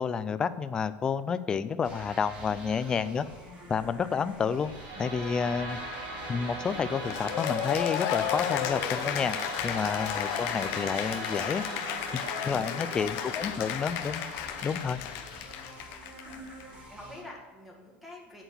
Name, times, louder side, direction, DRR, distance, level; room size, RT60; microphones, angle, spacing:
voice 1, 0.0-3.3 3.7-4.7 5.0-5.8 6.3-9.4 9.6-11.6 12.1-12.2 12.5-14.2 14.6-15.0, left 6 dB, 15° left, 14 dB, 0.4 m, -30 dB
sound 1, 1.8-17.2, equal, 20° right, 2.9 m, -46 dB
voice 2, 2.8-3.1 11.9-14.1 16.3-18.4, left 1 dB, 5° right, -1 dB, 1.7 m, -49 dB
sound 2, 4.5-15.6, right 2 dB, 45° right, 3.7 m, -40 dB
Cheering / Applause, 7.1-16.6, left 11 dB, 50° left, 0.7 m, -34 dB
8.1 x 8.0 x 6.3 m, 1.3 s
cardioid pair, 180°, 5 cm